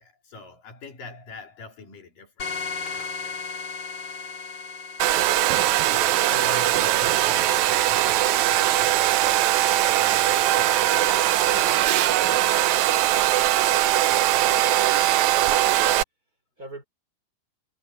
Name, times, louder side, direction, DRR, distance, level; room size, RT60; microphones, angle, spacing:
voice 1, 0.0-3.5 3.8-4.8 5.9-11.8 12.2-12.6 14.1-14.6, left 3 dB, 75° left, 5.8 m, -45 dB
sound 1, 2.4-5.5, left 4 dB, 30° left, 3.2 m, -34 dB
Domestic sounds home sounds, 5.0-16.0, right 13 dB, 70° right, 2.0 m, -20 dB
voice 2, 14.4-15.9 16.6-16.8, right 2 dB, 25° right, 5.0 m, -42 dB
omnidirectional pair, 3.9 m